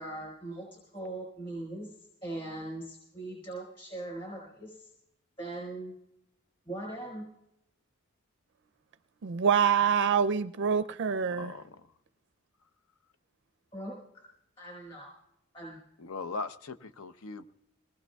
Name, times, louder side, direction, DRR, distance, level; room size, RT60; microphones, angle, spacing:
voice 1, 0.0-4.9 5.4-6.0 6.7-7.2 13.7-14.2 14.6-15.1 15.5-15.8, right 2 dB, 25° left, -4 dB, 4.6 m, -40 dB
voice 2, 9.2-11.5, right 7 dB, 55° right, 10 dB, 0.4 m, -26 dB
voice 3, 11.3-11.9 16.0-17.4, left 3 dB, 80° left, 11 dB, 0.7 m, -39 dB
23.0 x 19.0 x 2.3 m, 0.81 s
head